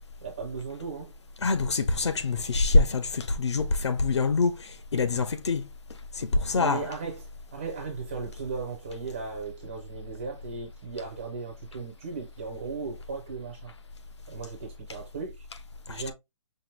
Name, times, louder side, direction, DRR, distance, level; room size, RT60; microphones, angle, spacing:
voice 1, 0.2-1.1 6.5-7.3 7.5-13.7 14.3-15.5 15.9-16.1, right 4 dB, 15° right, 0.5 m, -36 dB
voice 2, 1.4-5.7 6.2-6.8 15.9-16.0, left 3 dB, 55° left, 0.8 m, -25 dB
5.7 x 2.6 x 3.2 m
hypercardioid pair, 180°, 17 cm